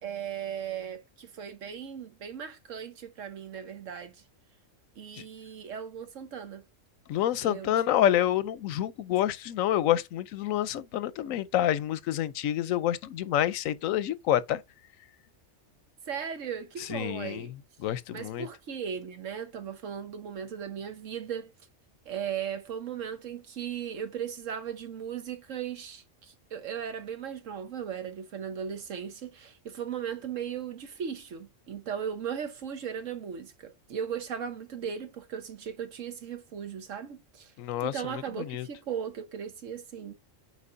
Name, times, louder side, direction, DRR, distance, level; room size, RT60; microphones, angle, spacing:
voice 1, 0.0-4.1 5.0-6.6 7.4-8.1 16.1-17.5 18.1-21.5 22.1-37.5 37.8-40.1, right 8 dB, 70° right, 1.3 m, -37 dB
voice 2, 7.1-14.6 16.9-17.5 17.8-18.5 37.6-38.7, left 12 dB, 85° left, 1.0 m, -28 dB
8.2 x 4.7 x 2.6 m
omnidirectional pair, 1.4 m